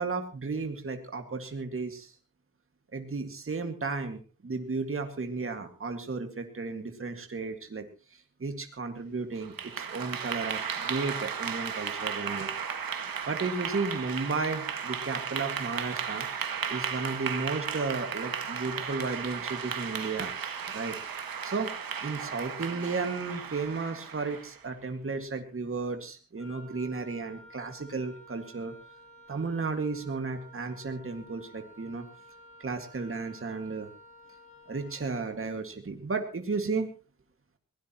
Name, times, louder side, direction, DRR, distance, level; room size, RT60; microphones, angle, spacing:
voice 1, 0.0-2.1 2.9-7.9 8.4-12.5 13.3-16.3 16.7-20.3 20.7-21.0 21.4-21.7 22.0-28.7 29.3-32.1 32.6-33.9 34.7-36.9, right 4 dB, 40° right, 5 dB, 2.0 m, -34 dB
Clapping / Applause, 9.4-24.6, right 7 dB, 85° right, 1.8 m, -35 dB
Wind instrument woodwind instrument, 26.4-35.2, equal, 20° left, 7.5 m, -53 dB
22.0 x 17.0 x 3.0 m, 0.34 s
wide cardioid pair, 105°, 34 cm